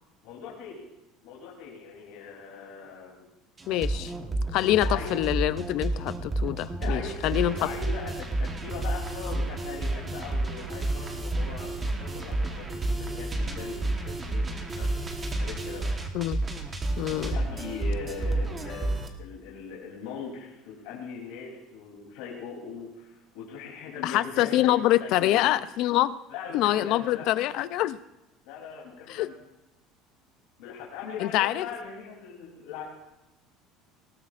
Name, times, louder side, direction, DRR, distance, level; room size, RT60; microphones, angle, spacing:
voice 1, 0.2-0.8 1.2-3.3 4.8-5.2 6.7-14.9 15.4-16.0 17.2-25.5 26.3-27.3 28.4-29.3 30.6-32.8, left 6 dB, 80° left, -3 dB, 3.2 m, -40 dB
sound 1, 3.6-19.1, right 2 dB, 15° right, 1.2 m, -30 dB
voice 2, 3.7-4.1 4.5-7.5 16.1-16.4 17.0-17.4 24.0-26.1 26.5-28.0 29.1-29.3 31.2-31.7, left 14 dB, 55° left, 15 dB, 0.4 m, -25 dB
19.5 x 17.0 x 2.5 m, 0.96 s
cardioid pair, 160°, 0 cm